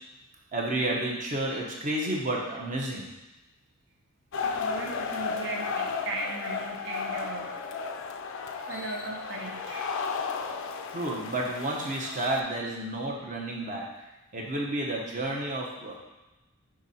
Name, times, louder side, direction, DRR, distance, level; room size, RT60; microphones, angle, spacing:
voice 1, 0.5-3.1 10.9-13.9 14.3-16.0, right 1 dB, 35° right, -1 dB, 0.9 m, -31 dB
sound 1, 4.3-12.4, left 5 dB, 60° left, 0.4 m, -34 dB
voice 2, 4.4-7.5 8.7-9.9, right 2 dB, 55° right, 0 dB, 0.8 m, -37 dB
5.9 x 3.8 x 4.2 m, 1.0 s
head